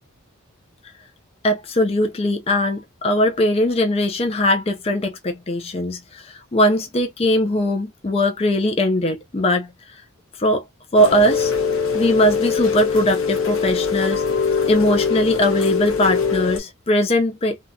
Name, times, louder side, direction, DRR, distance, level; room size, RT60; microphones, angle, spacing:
voice 1, 1.4-10.0 10.3-10.6 10.9-11.5 11.9-14.2 14.7-17.6, left 1 dB, 25° left, 0.5 m, -20 dB
Rain, 11.0-16.6, left 5 dB, 65° left, 0.8 m, -22 dB
2.7 x 2.3 x 2.6 m
head